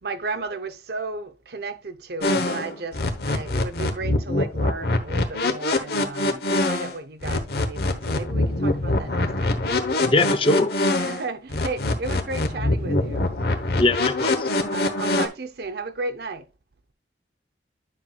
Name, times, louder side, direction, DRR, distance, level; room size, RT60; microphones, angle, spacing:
voice 1, 0.0-3.0 3.3-9.6 10.9-13.3 14.7-16.4, right 3 dB, 60° right, 0.7 m, -34 dB
sound 1, 2.2-6.9 7.2-11.2 11.5-15.3, left 2 dB, 60° left, 1.0 m, -24 dB
voice 2, 10.1-10.7 13.8-14.5, left 2 dB, 30° left, 0.6 m, -21 dB
9.8 x 5.9 x 2.3 m
head